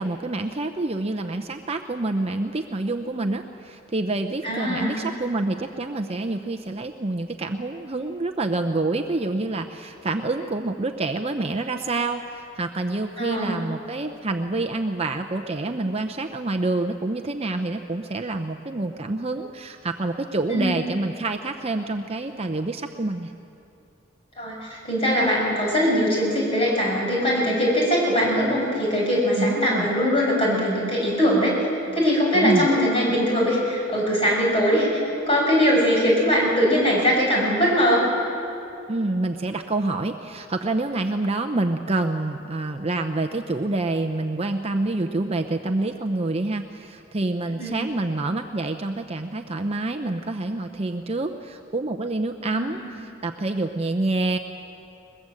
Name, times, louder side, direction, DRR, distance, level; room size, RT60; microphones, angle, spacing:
voice 1, 0.0-23.3 29.4-29.9 32.3-32.7 38.9-54.4, right 2 dB, 30° right, 6 dB, 0.7 m, -27 dB
voice 2, 4.4-5.1 13.2-13.6 20.5-20.8 24.4-31.6 31.9-34.9 35.3-38.0 47.5-47.8 52.5-52.9, equal, 25° left, -3 dB, 7.0 m, -21 dB
22.0 x 21.5 x 7.8 m, 2.8 s
head